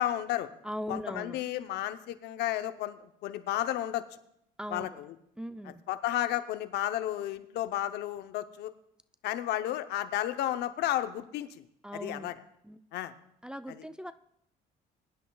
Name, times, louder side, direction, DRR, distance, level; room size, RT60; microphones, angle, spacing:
voice 1, 0.0-0.5 0.9-4.0 4.7-5.2 5.6-8.7 9.2-11.6 11.9-12.3 12.9-13.1 13.7-13.8, left 13 dB, 80° left, 10 dB, 0.7 m, -32 dB
voice 2, 0.6-1.4 4.6-5.0 5.4-5.8 11.8-12.3 12.6-12.8 13.4-14.1, equal, 5° right, 10 dB, 0.4 m, -39 dB
21.5 x 11.0 x 2.3 m, 0.75 s
cardioid pair, 110°, 17 cm